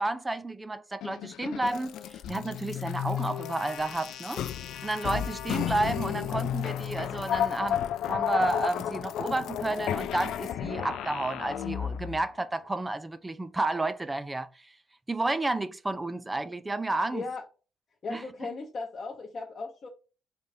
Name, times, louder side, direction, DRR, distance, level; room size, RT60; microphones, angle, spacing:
voice 1, 0.0-4.4 4.7-14.5 15.1-17.2 18.1-18.2, right 2 dB, 15° right, 0.5 m, -31 dB
sound 1, 1.0-12.3, left 10 dB, 80° left, 0.3 m, -33 dB
voice 2, 17.1-17.4 18.0-19.9, left 3 dB, 45° left, 0.8 m, -37 dB
4.7 x 3.3 x 2.7 m
cardioid pair, 90°, 0 cm